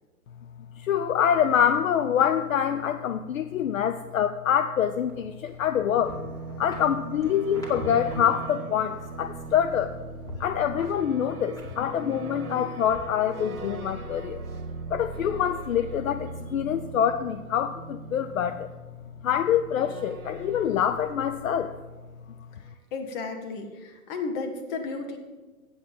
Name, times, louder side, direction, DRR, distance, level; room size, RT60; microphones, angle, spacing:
voice 1, 0.8-9.9 10.4-14.4 14.9-18.7 19.2-21.7, left 9 dB, 65° left, 10 dB, 0.6 m, -25 dB
sound 1, 5.1-8.4 8.7-9.9 10.2-12.5 12.9-13.9 14.4-14.6, left 2 dB, 10° left, 2.1 m, -43 dB
sound 2, 5.7-22.3, right 5 dB, 75° right, 1.1 m, -40 dB
voice 2, 22.9-25.2, left 4 dB, 35° left, 4 dB, 1.6 m, -33 dB
8.4 x 7.9 x 7.0 m, 1.2 s
figure-of-eight pair, 115°, 43 cm